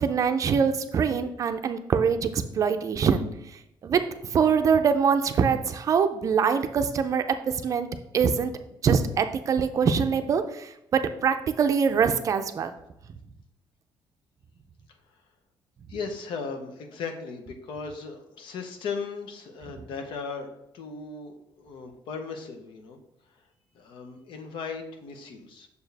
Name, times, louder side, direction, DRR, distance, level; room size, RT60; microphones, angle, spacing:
voice 1, 0.0-3.2 3.8-7.9 8.1-8.5 8.8-12.7, right 6 dB, 40° right, 8 dB, 0.4 m, -24 dB
voice 2, 15.9-20.5 20.7-23.0 23.7-25.7, left 5 dB, 75° left, 5 dB, 0.9 m, -37 dB
6.7 x 4.6 x 3.4 m, 0.82 s
cardioid pair, 145°, 8 cm